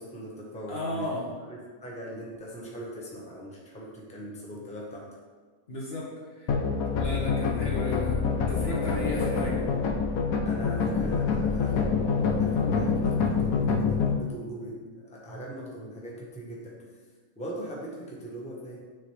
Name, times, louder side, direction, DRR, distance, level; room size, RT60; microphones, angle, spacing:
voice 1, 0.0-5.2 10.4-16.8 17.4-18.8, right 1 dB, 5° left, -4 dB, 1.1 m, -40 dB
voice 2, 0.7-1.3 5.7-6.6 7.0-9.8, left 1 dB, 50° left, -3 dB, 1.3 m, -34 dB
sound 1, 6.5-14.2, left 5 dB, 80° left, 1.1 m, -26 dB
9.7 x 3.9 x 3.2 m, 1.5 s
omnidirectional pair, 1.4 m